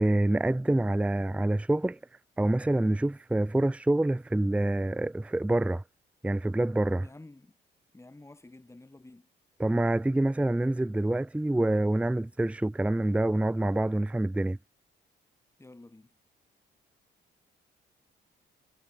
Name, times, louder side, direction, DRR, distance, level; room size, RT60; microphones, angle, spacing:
voice 1, 0.0-2.0 2.4-5.8 6.2-7.1 9.6-14.6, right 1 dB, 5° right, 0.6 m, -26 dB
voice 2, 7.0-7.6 7.9-9.3 15.6-16.1, left 2 dB, 15° left, 4.3 m, -51 dB
cardioid pair, 90°, 20 cm